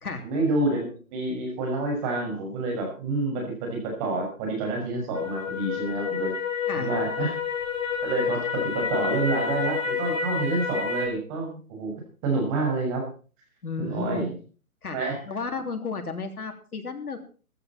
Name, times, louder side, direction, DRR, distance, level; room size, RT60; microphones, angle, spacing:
voice 1, 0.2-6.3 6.8-7.4 8.0-11.9 12.2-13.0 13.8-14.4 14.9-15.2, right 2 dB, 25° right, 2 dB, 6.1 m, -28 dB
sound 1, 5.1-11.1, left 6 dB, 65° left, 2.9 m, -29 dB
voice 2, 13.6-14.3 14.8-15.0 15.2-17.2, left 4 dB, 90° left, 5 dB, 3.4 m, -33 dB
15.0 x 13.0 x 4.4 m, 0.37 s
hypercardioid pair, 160°, 43 cm